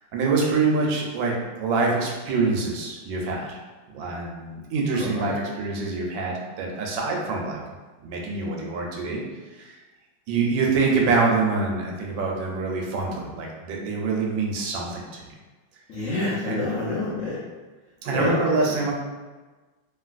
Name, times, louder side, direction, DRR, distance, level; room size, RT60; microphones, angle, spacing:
voice 1, 0.1-1.3 1.6-3.6 3.9-7.6 8.0-9.2 9.6-9.7 10.3-15.3 16.4-16.6 18.0-18.9, right 4 dB, 80° right, -1 dB, 1.3 m, -25 dB
voice 2, 5.0-5.4 15.9-17.4 18.1-18.3, left 2 dB, 65° left, -9 dB, 0.8 m, -27 dB
3.1 x 2.7 x 2.4 m, 1.3 s
omnidirectional pair, 2.1 m